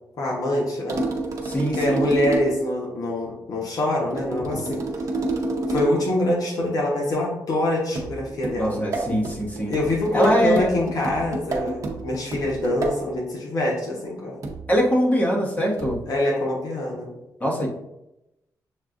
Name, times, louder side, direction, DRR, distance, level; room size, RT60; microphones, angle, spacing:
voice 1, 0.2-1.0 1.7-4.8 5.7-8.8 9.7-14.4 16.1-17.1, left 1 dB, 60° left, -2 dB, 1.0 m, -24 dB
sound 1, 0.9-2.7 4.1-6.1 8.0-13.1 14.4-14.8 15.8-16.1, right 3 dB, 50° right, 0.8 m, -29 dB
voice 2, 1.4-2.0 8.6-9.7 10.1-10.7 14.7-16.0 17.4-17.7, equal, 20° left, -3 dB, 1.1 m, -22 dB
7.1 x 2.4 x 2.5 m, 0.90 s
cardioid pair, 125°, 7 cm